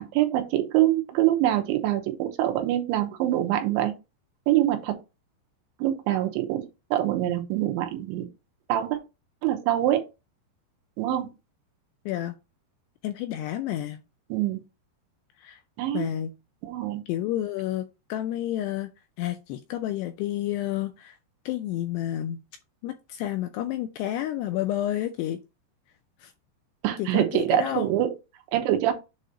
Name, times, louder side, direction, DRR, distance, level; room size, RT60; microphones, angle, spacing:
voice 1, 0.0-3.9 4.5-5.0 5.8-8.3 8.7-9.0 9.4-10.0 11.0-11.3 14.3-14.6 15.8-16.1 16.6-17.0 26.8-28.1 28.5-28.9, right 13 dB, 90° right, 3.2 m, -24 dB
voice 2, 12.1-12.4 13.0-14.0 15.4-15.6 15.9-16.3 17.1-18.9 19.2-21.2 21.5-22.4 22.8-25.4 26.2-26.3 27.0-27.9, left 12 dB, 85° left, 2.4 m, -30 dB
7.6 x 2.8 x 4.9 m
omnidirectional pair, 5.2 m